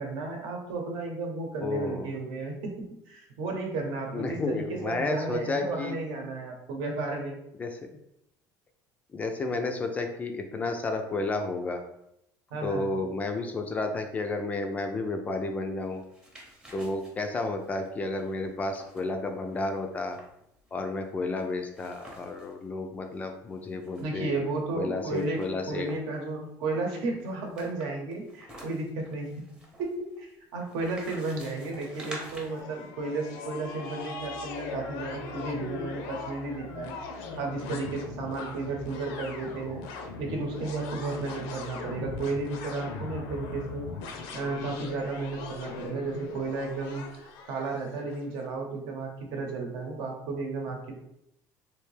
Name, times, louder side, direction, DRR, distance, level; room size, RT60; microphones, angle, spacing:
voice 1, 0.0-2.7 3.1-7.4 12.5-12.9 24.0-25.4 25.7-29.3 29.8-36.9 37.4-39.8 40.2-43.9 44.3-51.0, right 3 dB, 70° right, 1 dB, 0.9 m, -33 dB
voice 2, 1.6-2.1 4.1-6.0 7.6-7.8 9.1-11.8 12.6-16.0 16.7-20.2 20.7-24.3 24.7-25.9, left 3 dB, 20° left, 5 dB, 0.3 m, -31 dB
sound 1, 15.9-22.5 22.9-23.0 23.3-24.5 25.1-26.2 26.9-32.6, right 1 dB, 10° right, 0.7 m, -49 dB
sound 2, 31.2-48.3, left 4 dB, 85° left, 0.6 m, -40 dB
3.2 x 2.7 x 3.2 m, 0.79 s
cardioid pair, 160°, 8 cm